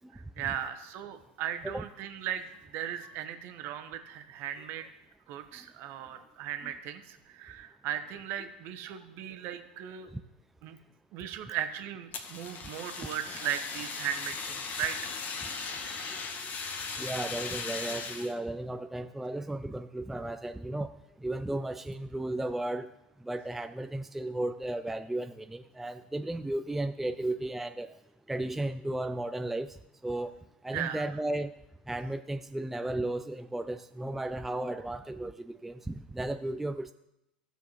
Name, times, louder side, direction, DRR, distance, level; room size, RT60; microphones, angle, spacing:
voice 1, 0.1-2.5 2.7-4.9 5.3-10.1 10.6-10.8 11.1-15.0 30.7-31.0, right 10 dB, 45° right, 8 dB, 1.0 m, -37 dB
Fire, 12.1-18.3, left 5 dB, 35° left, 1.1 m, -38 dB
voice 2, 15.8-16.4 16.7-20.9 21.2-22.9 23.2-28.0 28.3-29.8 30.0-30.3 30.6-31.5 31.9-36.9, right 1 dB, 5° right, 9 dB, 0.3 m, -34 dB
15.0 x 6.8 x 3.1 m, 0.89 s
figure-of-eight pair, 85°, 5 cm